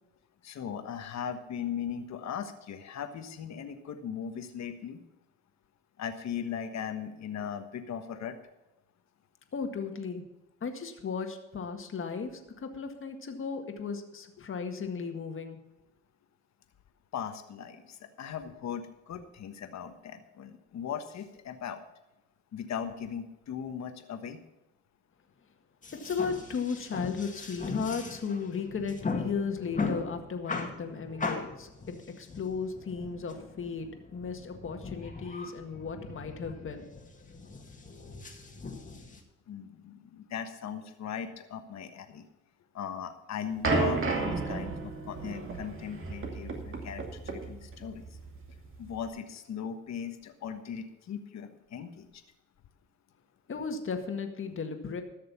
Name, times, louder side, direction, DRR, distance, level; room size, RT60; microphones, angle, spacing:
voice 1, 0.4-5.0 6.0-8.4 17.1-21.8 22.5-24.4 39.5-42.2 42.7-48.1 48.8-52.2, left 8 dB, 60° left, 8 dB, 1.4 m, -38 dB
voice 2, 9.5-10.2 10.6-15.6 25.9-36.9 53.5-55.0, left 5 dB, 45° left, 5 dB, 1.8 m, -35 dB
sound 1, 25.8-39.2, left 4 dB, 25° left, 1.9 m, -39 dB
sound 2, 43.6-49.0, right 4 dB, 45° right, 2.4 m, -33 dB
13.5 x 6.6 x 7.0 m, 0.96 s
cardioid pair, 90°, 30 cm